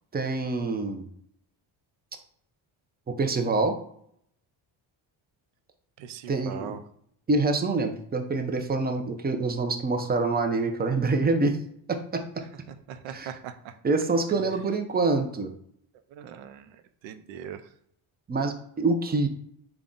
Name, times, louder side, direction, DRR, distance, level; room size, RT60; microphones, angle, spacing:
voice 1, 0.1-1.0 3.2-3.8 6.3-6.8 7.3-11.6 11.9-12.2 13.1-13.3 13.8-15.5 18.3-19.3, right 3 dB, 20° right, 6 dB, 0.5 m, -26 dB
voice 2, 6.0-6.8 12.9-13.8 14.3-14.5 16.1-17.7, right 8 dB, 75° right, 10 dB, 0.6 m, -40 dB
3.5 x 2.3 x 3.8 m, 0.67 s
cardioid pair, 85°, 47 cm